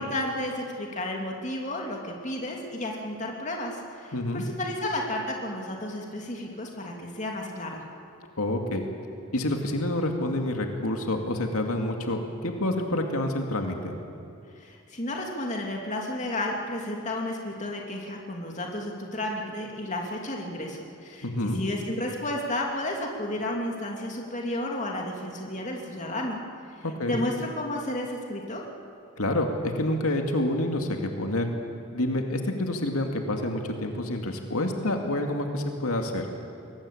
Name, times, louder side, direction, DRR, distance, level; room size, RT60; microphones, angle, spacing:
voice 1, 0.0-7.8 14.5-26.4 26.8-28.6, left 1 dB, 35° left, 0 dB, 2.7 m, -32 dB
voice 2, 4.1-4.5 8.4-8.9 9.3-13.9 21.2-21.6 27.0-27.2 29.2-31.5 31.9-36.3, left 1 dB, 90° left, 3 dB, 2.4 m, -28 dB
23.0 x 19.5 x 8.6 m, 2.6 s
head